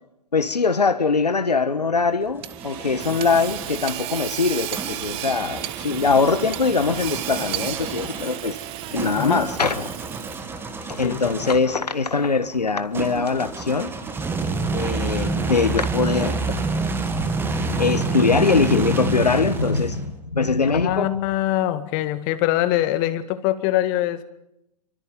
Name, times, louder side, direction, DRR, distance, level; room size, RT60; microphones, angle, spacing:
voice 1, 0.3-8.6 8.9-9.9 10.9-13.9 14.7-16.6 17.4-21.2, left 4 dB, 80° left, 1.4 m, -22 dB
sound 1, 2.0-3.8 4.7-11.8 12.9-20.2, right 3 dB, 10° right, 2.3 m, -29 dB
Hammer / Sawing, 2.4-10.6, right 14 dB, 25° right, 1.4 m, -33 dB
sound 2, 3.3-18.7, right 3 dB, 55° right, 7.3 m, -50 dB
voice 2, 9.2-9.5 11.0-11.6 20.7-24.2, left 14 dB, 30° left, 1.8 m, -23 dB
27.5 x 25.0 x 5.3 m
figure-of-eight pair, 115°, 21 cm